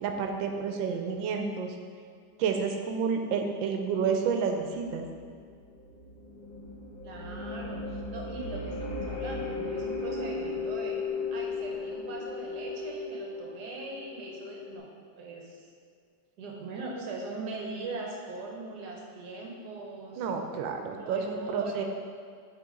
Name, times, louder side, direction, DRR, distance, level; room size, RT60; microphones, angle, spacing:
voice 1, 0.0-1.7 2.4-5.0 20.2-21.8, right 6 dB, 90° right, 4 dB, 1.3 m, -30 dB
sound 1, 4.4-14.8, left 3 dB, 35° left, 0.7 m, -36 dB
voice 2, 7.0-11.0 11.3-14.9 15.1-15.7 16.4-20.3 21.0-21.8, right 3 dB, 65° right, -1 dB, 1.4 m, -40 dB
6.8 x 3.9 x 3.7 m, 2.2 s
omnidirectional pair, 2.0 m